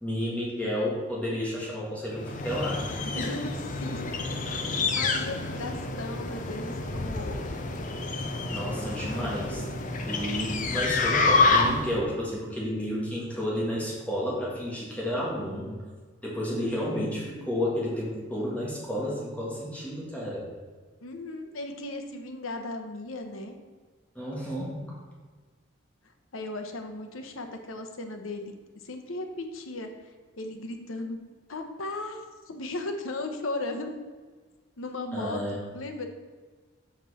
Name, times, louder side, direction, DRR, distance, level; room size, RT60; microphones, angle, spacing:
voice 1, 0.0-2.8 3.1-3.3 8.5-9.6 10.0-15.8 16.2-20.4 24.1-25.0 35.1-35.6, equal, 5° left, -5 dB, 1.6 m, -31 dB
sound 1, 2.2-12.0, left 3 dB, 40° left, 0.6 m, -28 dB
voice 2, 3.0-4.1 4.9-7.4 16.7-17.0 21.0-23.6 26.3-28.5 28.8-29.9 30.4-31.2 31.5-33.9 34.8-36.1, left 2 dB, 90° left, 5 dB, 0.9 m, -36 dB
7.3 x 5.3 x 4.1 m, 1.4 s
head